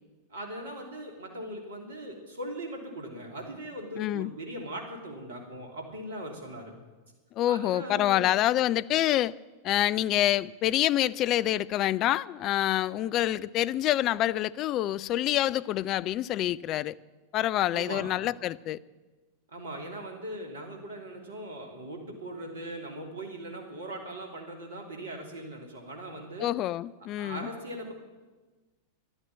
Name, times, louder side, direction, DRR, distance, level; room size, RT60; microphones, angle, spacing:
voice 1, 0.3-6.7 7.5-8.4 17.7-18.1 19.5-26.5 27.2-27.9, right 1 dB, 65° right, 3.0 m, -40 dB
voice 2, 4.0-4.3 7.4-9.3 9.6-16.9 17.3-18.8 26.4-27.5, left 13 dB, 35° left, 0.4 m, -27 dB
11.5 x 11.0 x 8.9 m
figure-of-eight pair, 90°, 0 cm